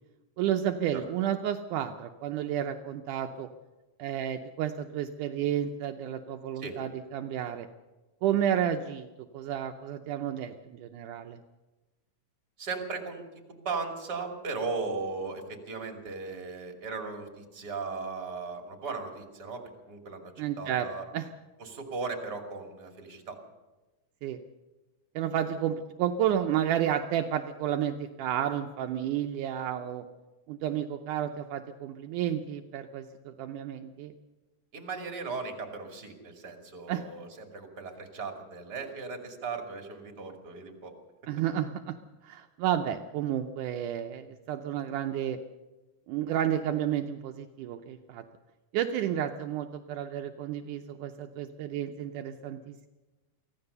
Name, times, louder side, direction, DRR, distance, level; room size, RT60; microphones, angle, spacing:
voice 1, 0.4-3.5 4.0-7.7 8.2-11.4 20.4-20.9 21.1-21.3 24.2-24.4 25.2-30.1 30.5-34.1 36.9-37.0 41.3-42.0 42.2-45.4 46.1-48.2 48.7-52.9, right 10 dB, 80° right, 5 dB, 2.2 m, -31 dB
voice 2, 12.6-21.1 21.6-23.4 34.7-40.9, right 4 dB, 30° right, 3 dB, 2.9 m, -37 dB
24.0 x 15.5 x 6.8 m, 1.1 s
omnidirectional pair, 3.7 m